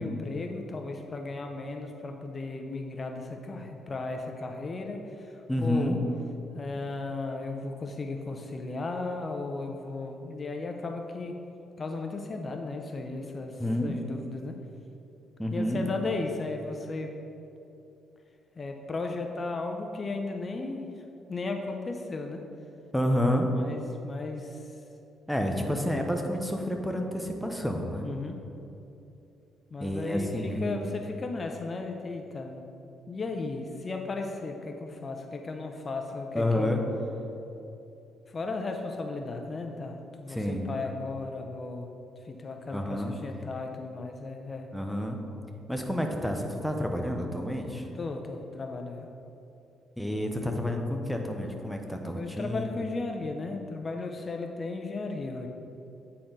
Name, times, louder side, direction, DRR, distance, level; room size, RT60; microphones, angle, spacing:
voice 1, 0.0-5.3 5.6-6.0 6.5-11.4 11.8-14.6 15.5-17.1 18.6-20.9 21.3-22.4 23.6-24.6 28.0-28.4 29.7-32.7 33.1-36.7 38.3-41.9 42.2-44.7 47.9-49.1 52.1-55.5, left 3 dB, 35° left, 4 dB, 0.6 m, -35 dB
voice 2, 5.5-6.0 13.6-14.0 15.4-15.8 22.9-23.5 25.3-28.1 29.8-30.8 36.3-36.8 40.3-40.7 42.7-43.1 44.7-45.2 45.7-47.8 50.0-52.9, left 1 dB, ahead, 2 dB, 0.7 m, -29 dB
8.5 x 4.3 x 3.8 m, 2.8 s
cardioid pair, 90°, 0 cm